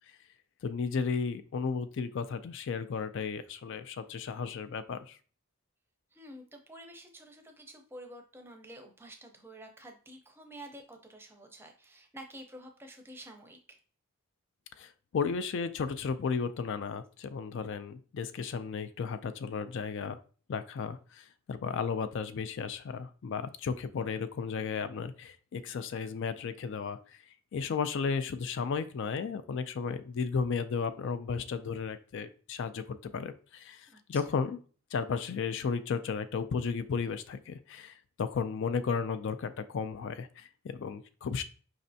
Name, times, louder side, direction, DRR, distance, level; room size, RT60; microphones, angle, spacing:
voice 1, 0.6-5.2 14.8-20.2 20.5-27.0 27.5-34.6 34.9-41.4, left 5 dB, 55° left, 11 dB, 0.4 m, -34 dB
voice 2, 6.1-13.8 33.9-34.0 34.3-34.4, right 1 dB, 10° right, 4 dB, 0.6 m, -49 dB
5.1 x 3.2 x 2.7 m, 0.40 s
head